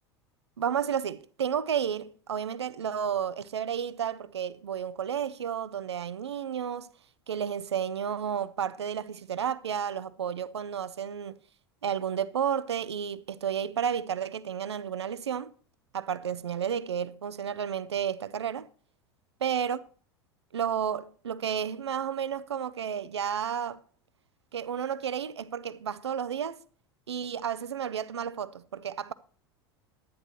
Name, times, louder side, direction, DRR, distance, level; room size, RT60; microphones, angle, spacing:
voice 1, 0.6-6.9 7.3-11.4 11.8-15.5 15.9-18.7 19.4-19.8 20.5-23.8 24.5-26.6 27.1-29.1, right 8 dB, 80° right, 0.5 m, -32 dB
10.5 x 10.0 x 3.0 m
figure-of-eight pair, 80°, 14 cm